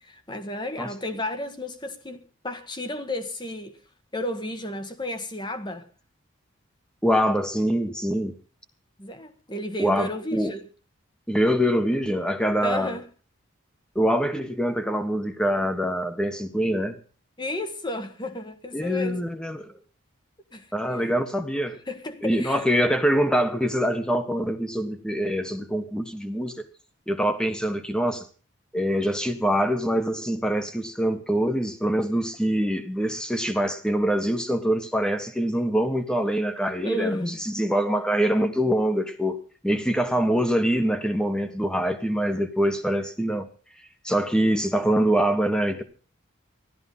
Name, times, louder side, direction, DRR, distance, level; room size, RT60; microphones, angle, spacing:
voice 1, 0.0-2.2 2.4-3.8 4.1-5.9 9.0-10.7 12.6-13.0 17.4-19.2 20.5-21.0 21.5-21.6 21.9-22.6 36.7-37.4, left 1 dB, 20° left, 1.6 m, -32 dB
voice 2, 7.0-8.4 9.8-10.5 11.3-13.0 13.9-17.0 18.7-19.7 20.7-21.8 22.2-26.6 27.1-28.3 28.7-43.5 44.0-45.8, equal, 5° left, 1.5 m, -24 dB
15.5 x 13.0 x 5.6 m
head